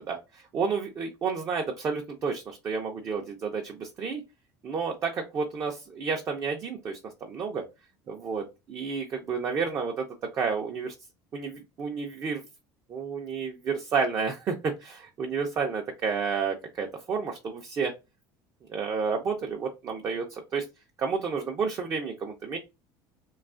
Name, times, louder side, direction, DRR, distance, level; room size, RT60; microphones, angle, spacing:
voice 1, 0.1-4.2 4.6-7.6 8.1-10.1 10.3-10.9 11.3-12.4 12.9-17.9 18.7-20.7 21.0-22.6, right 5 dB, 30° right, 2 dB, 0.4 m, -31 dB
2.6 x 2.3 x 2.4 m, 0.25 s
cardioid pair, 150°, 9 cm